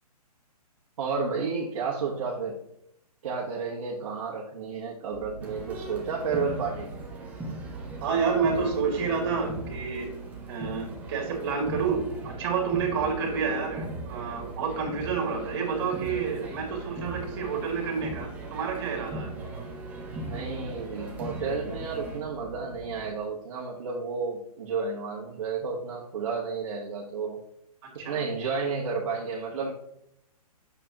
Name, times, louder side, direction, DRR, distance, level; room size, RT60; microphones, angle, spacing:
voice 1, 1.0-2.6 3.2-6.9 20.1-27.4 27.9-29.7, right 5 dB, 55° right, -3 dB, 1.4 m, -32 dB
sound 1, 5.1-23.1, right 5 dB, 85° right, 1.1 m, -44 dB
sound 2, 5.4-22.2, right 1 dB, 10° right, 0.8 m, -40 dB
voice 2, 8.0-10.1 10.5-12.0 12.2-19.3 28.0-28.2, right 5 dB, 40° right, 1 dB, 2.5 m, -29 dB
8.3 x 6.9 x 2.9 m, 0.77 s
hypercardioid pair, 160°, 20 cm